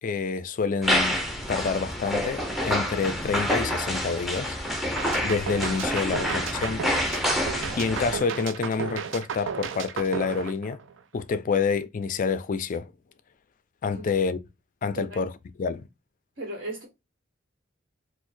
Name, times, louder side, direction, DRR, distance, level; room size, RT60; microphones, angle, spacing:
voice 1, 0.0-1.2 1.5-4.6 5.2-6.8 7.1-7.2 7.8-10.8 11.1-12.9 13.8-14.4 14.8-15.9, left 5 dB, 45° left, 0.4 m, -28 dB
sound 1, 0.8-8.2, equal, ahead, 0.7 m, -28 dB
sound 2, 5.0-11.2, right 7 dB, 75° right, 0.4 m, -34 dB
voice 2, 16.4-16.9, right 1 dB, 50° right, 1.2 m, -36 dB
4.4 x 2.1 x 2.5 m
head